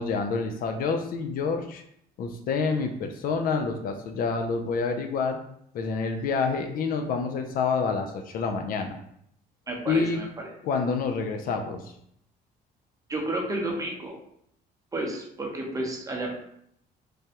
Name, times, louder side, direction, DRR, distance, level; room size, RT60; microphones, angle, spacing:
voice 1, 0.0-1.8 2.2-5.4 5.7-9.0 9.9-10.2 10.6-11.9, left 4 dB, 60° left, 5 dB, 0.4 m, -28 dB
voice 2, 9.7-10.2 13.1-14.2 14.9-16.3, right 1 dB, 20° right, -1 dB, 0.7 m, -31 dB
3.3 x 2.2 x 2.8 m, 0.71 s
cardioid pair, 110°, 17 cm